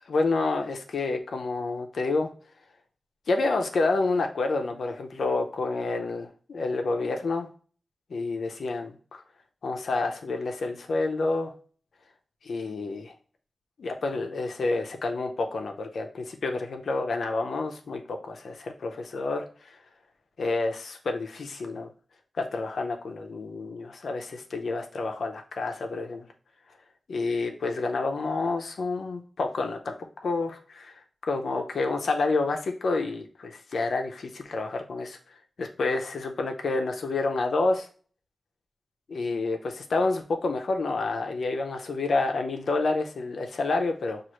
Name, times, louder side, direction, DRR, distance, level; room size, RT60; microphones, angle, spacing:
voice 1, 0.1-2.3 3.3-7.5 8.1-9.2 9.6-11.5 12.4-13.1 13.8-19.8 20.4-21.9 22.4-26.3 27.1-29.9 30.2-35.2 35.6-37.9 39.1-44.2, left 3 dB, 75° left, 4 dB, 0.6 m, -29 dB
6.1 x 2.5 x 3.0 m, 0.42 s
wide cardioid pair, 145°, 0 cm